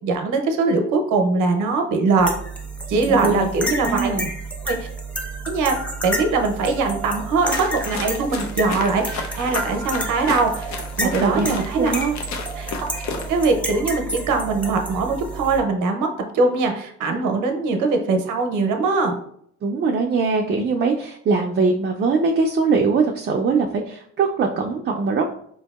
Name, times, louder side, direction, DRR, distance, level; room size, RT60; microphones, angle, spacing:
voice 1, 0.0-2.3 2.9-4.1 4.7-4.8 5.5-5.8 6.0-11.9 12.6-12.7 13.3-19.2, right 3 dB, 85° right, 5 dB, 0.7 m, -21 dB
sound 1, 2.2-15.6, right 1 dB, 5° left, 0.7 m, -30 dB
voice 2, 2.9-3.4 3.8-4.3 11.0-12.2 17.1-17.2 19.6-25.2, right 4 dB, 35° right, 2 dB, 0.4 m, -22 dB
sound 2, 7.4-13.5, left 4 dB, 65° left, 0.6 m, -33 dB
4.5 x 2.6 x 2.3 m, 0.67 s
cardioid pair, 90°, 30 cm